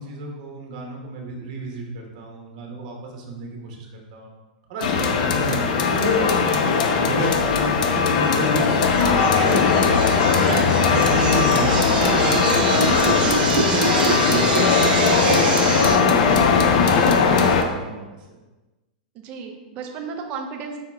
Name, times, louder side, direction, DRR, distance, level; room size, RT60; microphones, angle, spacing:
voice 1, 0.0-4.3 4.7-5.6 5.9-7.3 7.6-9.8 10.4-13.2 13.4-16.5 16.8-18.1, right 2 dB, 50° right, 0 dB, 1.0 m, -32 dB
sound 1, 4.8-17.6, left 5 dB, 65° left, 0.5 m, -19 dB
sound 2, 8.2-16.0, right 5 dB, 90° right, 0.6 m, -26 dB
voice 2, 12.7-13.2 19.1-20.8, right 5 dB, 30° right, 3 dB, 0.6 m, -34 dB
5.1 x 2.8 x 3.5 m, 1.2 s
supercardioid pair, 155°, 5 cm